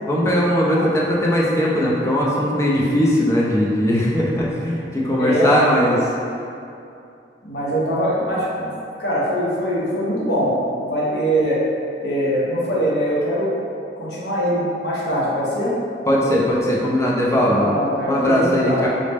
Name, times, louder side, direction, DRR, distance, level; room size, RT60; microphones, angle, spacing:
voice 1, 0.0-6.0 16.1-17.7 18.0-18.9, equal, 15° left, -4 dB, 0.4 m, -19 dB
voice 2, 5.2-5.7 7.4-8.7 9.0-10.5 10.8-11.6 12.0-13.5 14.0-15.7 17.2-18.8, equal, 70° left, -7 dB, 0.8 m, -22 dB
3.9 x 2.1 x 3.3 m, 2.6 s
head